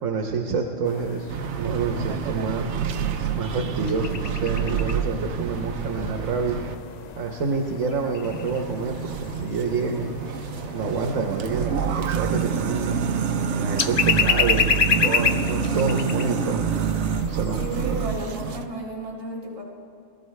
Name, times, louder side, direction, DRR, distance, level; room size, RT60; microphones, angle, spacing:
voice 1, 0.0-2.7 3.3-6.6 7.2-10.1 10.7-13.0 13.5-16.6 17.3-18.0, right 4 dB, 85° right, 2 dB, 1.3 m, -27 dB
sound 1, 0.9-18.6, left 6 dB, 55° left, 0.4 m, -30 dB
sound 2, 1.3-6.7 8.2-18.7, right 7 dB, 70° right, 0.9 m, -28 dB
voice 2, 17.5-19.6, right 1 dB, 25° right, -6 dB, 2.4 m, -33 dB
21.0 x 13.0 x 3.2 m, 2.6 s
omnidirectional pair, 1.3 m